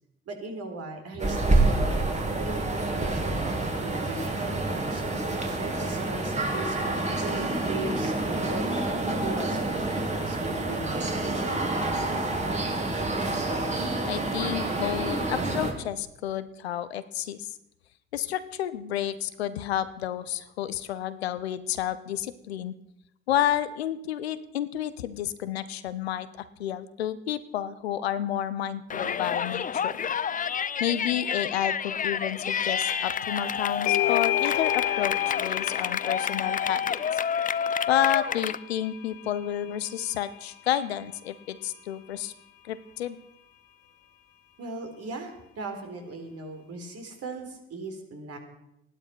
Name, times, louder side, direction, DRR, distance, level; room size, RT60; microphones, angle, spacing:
voice 1, 0.3-5.2 5.6-8.7 9.1-12.1 44.6-48.4, right 3 dB, 50° right, 4 dB, 4.1 m, -39 dB
sound 1, 1.2-15.7, right 2 dB, 20° right, 3.3 m, -28 dB
voice 2, 14.1-17.5 18.1-22.7 23.3-26.3 26.6-30.0 30.8-37.2 37.9-42.3 42.6-43.2, left 11 dB, 85° left, 15 dB, 0.8 m, -30 dB
Yell, 28.9-38.6, left 7 dB, 25° left, 0.6 m, -29 dB
sound 2, 32.9-33.2 33.5-40.8, left 14 dB, 70° left, 2.6 m, -32 dB
15.0 x 12.0 x 6.0 m, 0.81 s
figure-of-eight pair, 50°, 31 cm